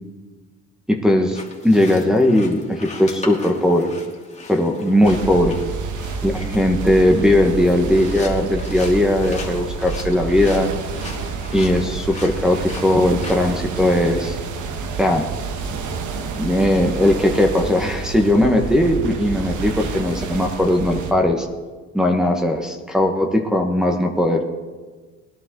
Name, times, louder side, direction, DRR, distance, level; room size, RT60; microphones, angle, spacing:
voice 1, 0.9-3.9 4.5-5.6 6.2-10.7 11.5-14.4 15.0-15.3 16.3-21.5 21.9-24.4, left 1 dB, ahead, 1 dB, 1.4 m, -18 dB
sound 1, 1.3-13.4, left 3 dB, 20° left, 2.6 m, -39 dB
sound 2, 5.0-21.1, right 5 dB, 80° right, 1.4 m, -29 dB
20.0 x 11.0 x 3.9 m, 1.4 s
cardioid pair, 90°, 30 cm